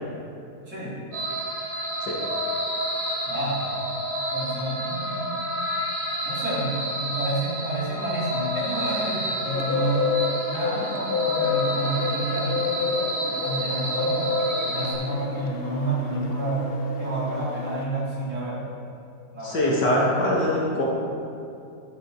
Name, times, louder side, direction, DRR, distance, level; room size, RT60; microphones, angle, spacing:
voice 1, 0.7-1.0 3.2-3.9 4.3-5.4 6.2-10.0 10.5-13.1 13.4-14.3 14.6-16.6 17.0-18.6 19.3-19.7, right 1 dB, 40° right, -8 dB, 3.9 m, -29 dB
sound 1, 1.1-14.9, equal, 60° right, 3.3 m, -30 dB
Bird, 9.5-17.8, left 5 dB, 55° left, 0.6 m, -29 dB
voice 2, 19.4-20.8, left 1 dB, 70° left, -4 dB, 2.7 m, -23 dB
11.5 x 7.8 x 6.4 m, 2.7 s
omnidirectional pair, 1.9 m